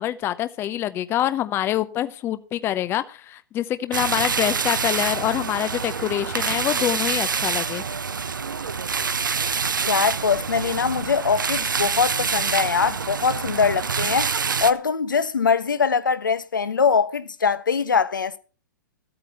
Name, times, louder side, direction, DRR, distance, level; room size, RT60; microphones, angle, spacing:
voice 1, 0.0-7.8, left 12 dB, 20° left, 0.7 m, -25 dB
sound 1, 3.9-14.7, right 5 dB, 75° right, 1.1 m, -26 dB
voice 2, 9.9-14.3 14.6-18.4, left 6 dB, 75° left, 1.2 m, -22 dB
14.5 x 8.8 x 5.5 m
figure-of-eight pair, 115°, 11 cm